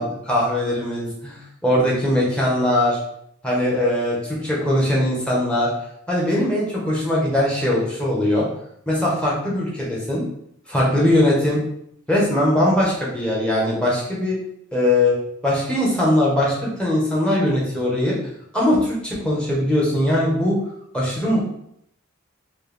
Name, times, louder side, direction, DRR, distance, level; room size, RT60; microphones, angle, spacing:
voice 1, 0.0-3.0 3.4-5.7 6.1-8.5 8.9-10.2 10.7-11.6 12.1-14.4 14.7-15.1 15.4-18.1 18.5-20.6 20.9-21.4, left 1 dB, 5° left, -5 dB, 1.2 m, -20 dB
4.4 x 2.4 x 3.4 m, 0.71 s
head